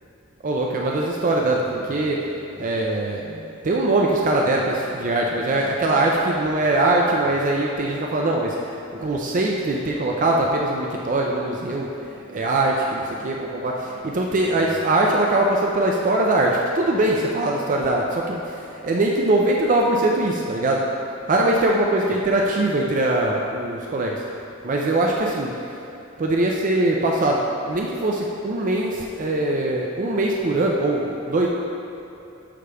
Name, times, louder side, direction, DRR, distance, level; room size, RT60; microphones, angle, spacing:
voice 1, 0.4-2.2 2.6-11.9 12.3-20.8 21.3-24.2 24.6-25.5 26.2-31.5, right 2 dB, 40° right, -1 dB, 0.5 m, -22 dB
6.7 x 5.0 x 3.3 m, 2.9 s
head